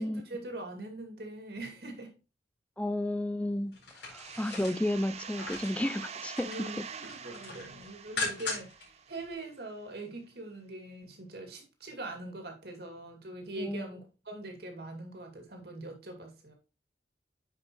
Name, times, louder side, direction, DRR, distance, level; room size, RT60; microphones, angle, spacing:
voice 1, 0.0-2.1 6.4-16.5, right 2 dB, 65° right, 2.3 m, -42 dB
voice 2, 2.8-6.7 13.6-13.8, left 1 dB, 5° left, 0.3 m, -32 dB
sound 1, 3.7-5.8 6.2-6.7 7.0-8.8 9.2-9.3, left 3 dB, 80° left, 4.3 m, -39 dB
sound 2, 4.1-9.6, right 6 dB, 40° right, 0.6 m, -45 dB
9.2 x 5.3 x 3.1 m
head